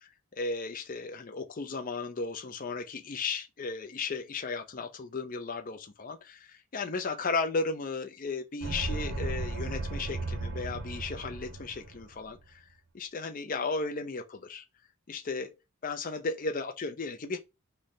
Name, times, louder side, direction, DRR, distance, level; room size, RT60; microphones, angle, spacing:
voice 1, 0.4-12.6 12.9-14.6 15.1-17.4, left 4 dB, 40° left, 0.5 m, -35 dB
sound 1, 8.6-12.2, right 2 dB, 55° right, 0.5 m, -35 dB
3.2 x 2.1 x 3.9 m
head